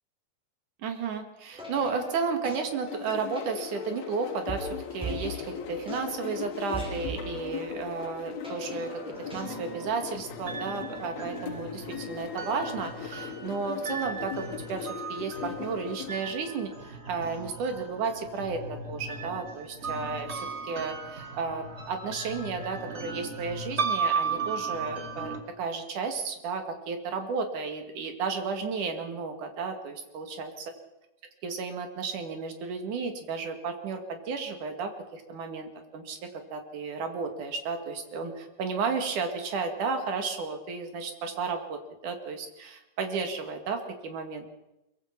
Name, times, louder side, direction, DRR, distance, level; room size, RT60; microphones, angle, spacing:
voice 1, 0.8-30.7 31.4-44.5, right 5 dB, 55° right, 6 dB, 3.6 m, -33 dB
sound 1, 1.5-9.8, right 2 dB, ahead, 5.6 m, -41 dB
sound 2, 2.9-16.2, left 10 dB, 80° left, 3.2 m, -40 dB
sound 3, 9.1-25.4, right 4 dB, 30° right, 1.2 m, -36 dB
23.0 x 23.0 x 6.0 m, 0.93 s
omnidirectional pair, 4.4 m